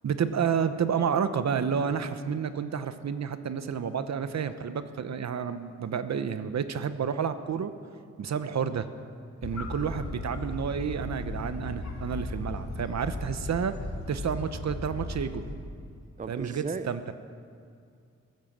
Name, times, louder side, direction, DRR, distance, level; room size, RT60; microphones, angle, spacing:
voice 1, 0.0-7.7 8.2-8.9 9.4-13.7 14.1-15.4 16.3-17.1, right 7 dB, 65° right, 11 dB, 0.9 m, -30 dB
sound 1, 9.4-15.6, left 2 dB, 65° left, 2.9 m, -36 dB
voice 2, 16.2-16.9, right 4 dB, 25° right, 11 dB, 0.7 m, -35 dB
15.0 x 13.0 x 7.3 m, 2.3 s
cardioid pair, 90°, 30 cm